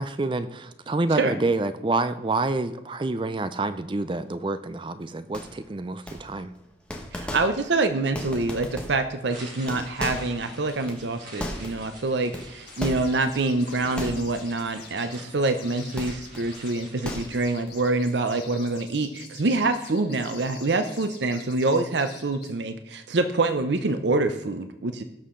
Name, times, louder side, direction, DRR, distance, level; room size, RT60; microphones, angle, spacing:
voice 1, 0.0-6.5, right 2 dB, 25° right, 12 dB, 0.4 m, -28 dB
sound 1, 5.3-5.7 6.1-6.6 6.9-7.8 8.1-9.2 9.5-11.9 12.3-13.4 13.9-14.5 14.9-15.0 16.0-16.5 16.9-17.7, equal, 5° left, 1.2 m, -36 dB
voice 2, 7.1-25.0, right 2 dB, 70° right, 9 dB, 0.7 m, -26 dB
sound 2, 9.2-18.5, right 1 dB, 45° right, 3.7 m, -47 dB
sound 3, 12.7-22.5, left 7 dB, 60° left, 4.1 m, -47 dB
17.0 x 6.5 x 3.8 m, 0.94 s
head